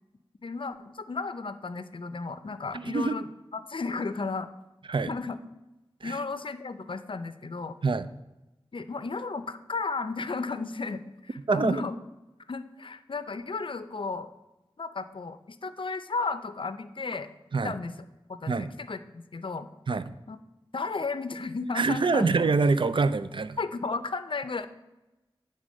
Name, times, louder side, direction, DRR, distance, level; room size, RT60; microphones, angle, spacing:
voice 1, 0.4-4.5 5.1-5.4 6.0-7.8 8.7-12.0 12.5-14.3 14.8-17.3 17.6-17.9 18.3-19.7 20.3-20.4 20.7-22.3 23.6-24.7, left 4 dB, 60° left, 11 dB, 0.5 m, -34 dB
voice 2, 2.7-3.1 4.9-5.1 6.0-6.2 7.8-8.1 11.5-11.8 17.5-17.7 18.5-18.7 19.9-20.1 21.7-23.6, right 4 dB, 60° right, 13 dB, 0.4 m, -25 dB
9.1 x 3.7 x 6.2 m, 1.0 s
wide cardioid pair, 70°, 10 cm